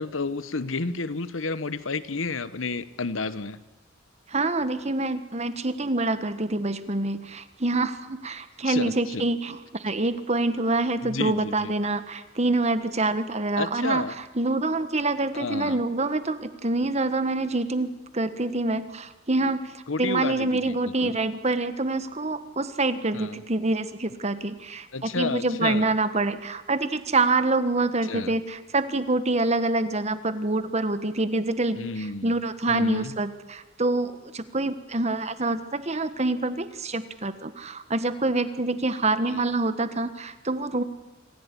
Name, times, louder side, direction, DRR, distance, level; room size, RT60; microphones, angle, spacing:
voice 1, 0.0-3.6 8.6-9.3 11.0-11.7 13.6-14.1 15.3-15.8 19.9-21.2 23.1-23.4 24.9-25.9 28.0-28.4 31.7-32.4 32.7-33.2, left 3 dB, 80° left, 15 dB, 1.1 m, -31 dB
voice 2, 4.3-14.0 14.3-19.7 20.0-40.8, right 2 dB, 35° right, 11 dB, 1.4 m, -26 dB
26.0 x 15.5 x 9.9 m, 1.1 s
head